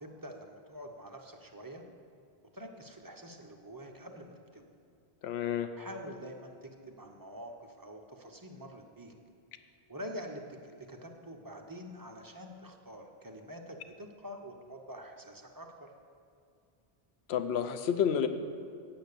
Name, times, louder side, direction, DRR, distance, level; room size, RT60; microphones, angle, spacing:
voice 1, 0.0-1.8 2.5-4.7 5.8-9.1 9.9-15.9, equal, 20° right, 2 dB, 0.8 m, -46 dB
voice 2, 5.2-5.7 17.3-18.3, left 8 dB, 80° left, 9 dB, 0.9 m, -29 dB
8.8 x 8.4 x 6.7 m, 2.4 s
omnidirectional pair, 1.1 m